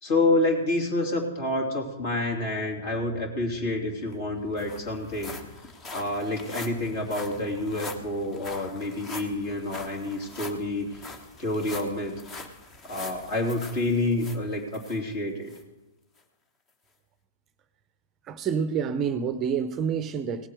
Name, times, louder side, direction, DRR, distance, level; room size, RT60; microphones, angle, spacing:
voice 1, 0.0-5.3 5.9-10.9 11.4-12.2 12.8-15.5, left 2 dB, 45° left, 0 dB, 3.1 m, -28 dB
sound 1, 3.8-3.9 4.1-15.0 15.5-15.6 16.2-16.3, left 3 dB, 20° left, 1.2 m, -43 dB
voice 2, 18.3-20.5, right 7 dB, 25° right, 11 dB, 0.7 m, -28 dB
18.0 x 7.4 x 5.0 m, 1.0 s
figure-of-eight pair, 110°, 0 cm